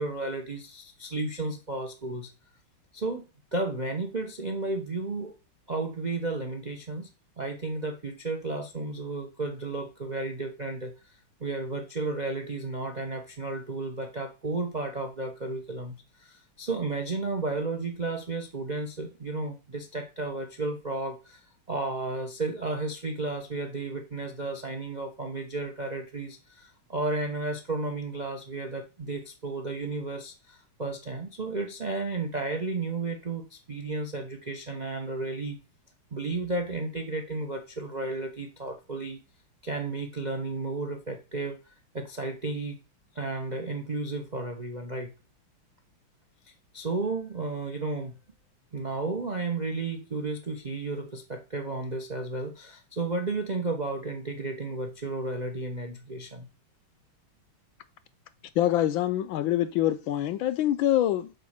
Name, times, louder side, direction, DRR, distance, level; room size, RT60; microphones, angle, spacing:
voice 1, 0.0-2.3 2.9-5.3 5.7-7.1 7.4-10.9 11.4-21.4 21.7-35.6 36.1-39.2 39.6-41.6 41.9-42.8 43.1-45.1 46.7-48.2 48.7-56.5, right 3 dB, 45° right, 0.5 m, -33 dB
voice 2, 58.6-61.3, left 12 dB, 75° left, 1.3 m, -25 dB
6.5 x 5.1 x 6.5 m
omnidirectional pair, 2.4 m